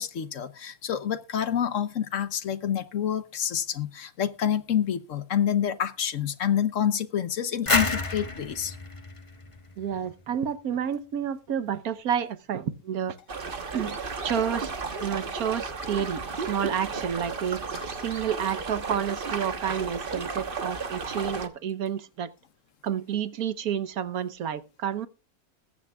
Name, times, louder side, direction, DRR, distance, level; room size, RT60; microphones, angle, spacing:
voice 1, 0.0-8.8, left 9 dB, 60° left, 1.1 m, -28 dB
sound 1, 7.7-10.4, left 3 dB, 25° left, 1.1 m, -29 dB
voice 2, 9.8-13.2 13.7-14.0 14.2-14.7 15.0-17.6 18.0-22.3 22.8-25.1, right 8 dB, 75° right, 1.4 m, -30 dB
sound 2, 13.3-21.5, right 4 dB, 40° right, 1.3 m, -34 dB
21.0 x 9.8 x 2.4 m
omnidirectional pair, 1.6 m